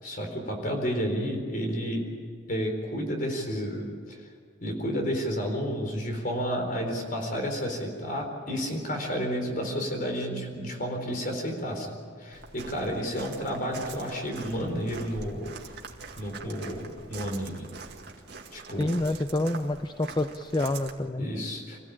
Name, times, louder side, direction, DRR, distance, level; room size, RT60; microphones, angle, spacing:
voice 1, 0.0-2.0 2.5-4.2 4.6-15.5 16.2-17.7 18.5-18.9 21.2-21.8, equal, 45° left, 3 dB, 4.3 m, -31 dB
Walk footsteps, 12.3-20.9, right 4 dB, 60° right, 2.1 m, -43 dB
voice 2, 18.8-21.3, left 1 dB, 20° left, 8 dB, 0.6 m, -28 dB
26.0 x 16.0 x 8.8 m, 2.1 s
head